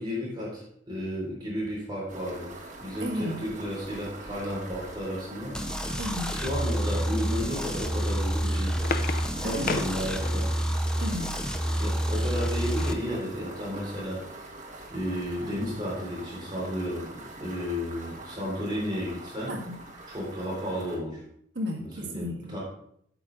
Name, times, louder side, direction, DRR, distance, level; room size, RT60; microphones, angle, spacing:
voice 1, 0.0-2.5 2.8-5.5 6.3-9.0 9.4-10.5 11.8-14.2 14.9-19.5 20.1-21.2 22.1-22.6, equal, 25° right, -5 dB, 3.5 m, -33 dB
sound 1, 2.1-21.0, right 2 dB, 40° right, 1.6 m, -44 dB
voice 2, 3.0-3.4 6.0-6.4 9.4-9.9 11.0-11.4 19.5-19.8 21.5-22.5, equal, 65° right, 1 dB, 1.6 m, -33 dB
sound 2, 5.5-12.9, equal, 5° left, 0.6 m, -28 dB
sound 3, 8.6-10.7 12.2-13.1 13.6-13.7 14.0-14.2, left 4 dB, 50° left, 0.5 m, -35 dB
8.7 x 7.7 x 3.8 m, 0.70 s
head